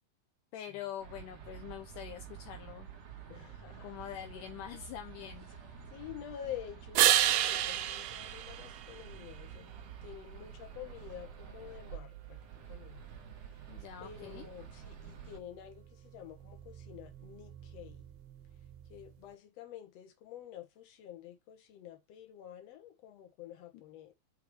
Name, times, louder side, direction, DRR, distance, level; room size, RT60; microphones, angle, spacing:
voice 1, 0.5-2.9 3.8-5.5 13.7-14.5 23.7-23.8, left 11 dB, 80° left, 1.9 m, -44 dB
sound 1, 1.0-15.4, right 8 dB, 60° right, 1.7 m, -49 dB
voice 2, 3.3-3.9 5.9-9.8 10.0-12.4 12.7-13.0 14.0-18.0 18.9-24.1, left 11 dB, 60° left, 2.0 m, -48 dB
sound 2, 7.0-9.5 15.3-19.3, right 12 dB, 85° right, 2.6 m, -33 dB
6.5 x 4.5 x 3.3 m
omnidirectional pair, 4.3 m